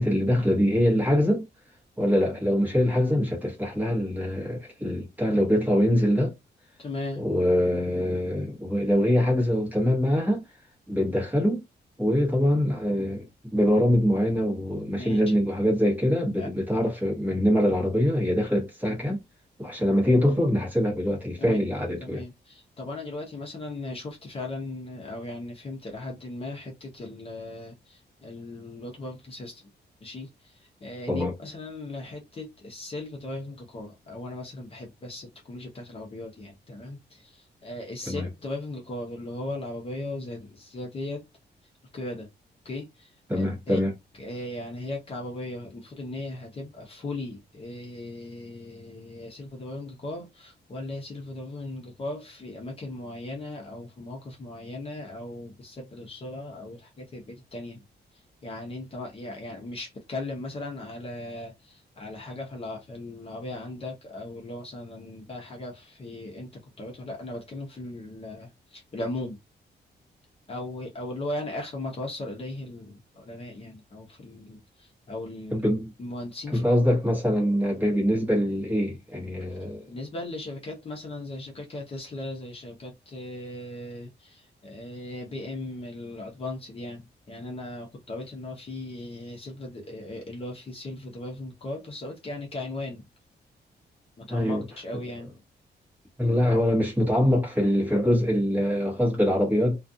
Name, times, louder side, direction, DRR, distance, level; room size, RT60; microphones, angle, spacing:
voice 1, 0.0-1.4 2.0-6.3 7.2-10.4 10.9-11.6 12.0-19.2 19.6-22.2 31.1-31.3 38.1-38.3 43.3-43.9 75.5-75.9 76.5-79.8 94.3-94.6 96.2-99.8, equal, 10° right, 1.0 m, -24 dB
voice 2, 6.8-7.3 14.9-15.4 16.4-16.5 21.4-21.6 22.0-29.6 30.0-41.2 41.9-42.3 42.6-43.8 44.2-57.8 58.4-69.4 70.5-75.6 76.0-76.6 79.9-93.0 94.2-95.4, left 2 dB, 35° left, 0.7 m, -37 dB
2.4 x 2.3 x 2.6 m
wide cardioid pair, 175°, 18 cm